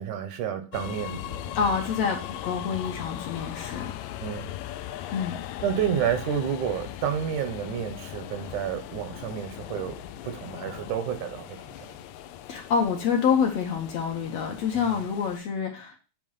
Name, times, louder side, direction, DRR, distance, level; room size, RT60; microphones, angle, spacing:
voice 1, 0.0-1.5 4.2-4.5 5.6-11.6 14.7-15.0, right 8 dB, 75° right, 2.3 m, -30 dB
sound 1, 0.7-15.4, left 12 dB, 80° left, 1.7 m, -39 dB
voice 2, 1.5-3.9 5.1-5.4 12.5-16.0, left 6 dB, 65° left, 1.9 m, -27 dB
8.7 x 3.0 x 5.5 m
omnidirectional pair, 3.6 m